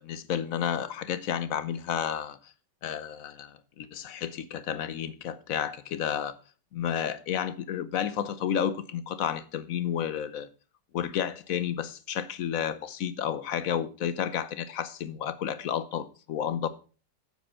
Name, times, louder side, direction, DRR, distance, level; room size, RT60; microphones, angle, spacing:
voice 1, 0.0-2.4 2.8-6.4 6.7-10.5 10.9-16.7, left 9 dB, 60° left, 1.0 m, -31 dB
8.7 x 7.7 x 5.6 m
omnidirectional pair, 2.0 m